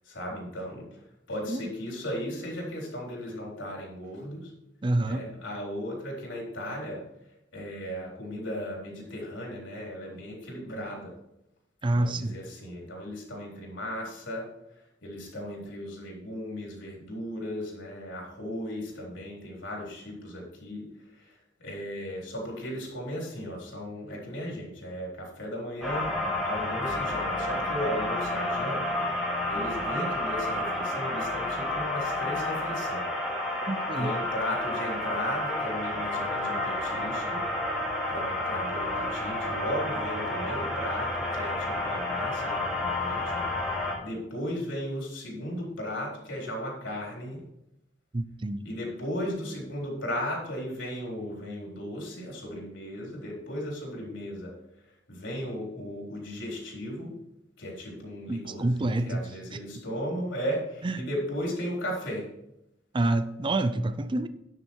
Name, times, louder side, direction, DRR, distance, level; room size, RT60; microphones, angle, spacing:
voice 1, 0.1-0.9 1.3-4.5 5.0-7.0 7.5-11.2 11.9-14.5 15.0-20.9 21.6-26.1 26.4-29.0 29.5-33.1 34.0-37.4 38.1-43.5 44.0-47.4 48.6-54.6 55.1-57.1 57.6-62.3, equal, 90° left, 3.9 m, -36 dB
voice 2, 4.8-5.3 11.8-12.4 33.7-34.2 48.1-48.7 58.3-59.3 60.8-61.0 62.9-64.3, right 2 dB, 25° right, 0.5 m, -27 dB
sound 1, 25.8-43.9, left 2 dB, ahead, 2.1 m, -30 dB
10.5 x 6.6 x 4.6 m
head